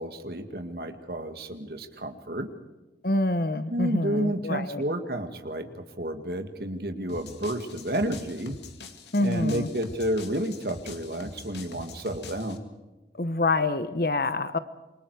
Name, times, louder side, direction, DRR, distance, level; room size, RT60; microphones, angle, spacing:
voice 1, 0.0-2.5 3.7-8.6 9.2-12.6, right 1 dB, 60° right, 7 dB, 2.1 m, -31 dB
voice 2, 3.0-4.8 9.1-9.7 13.2-14.6, left 2 dB, 55° left, 12 dB, 1.0 m, -26 dB
sound 1, 7.1-12.6, left 3 dB, 80° left, 2.4 m, -44 dB
27.5 x 24.0 x 4.9 m, 1.1 s
head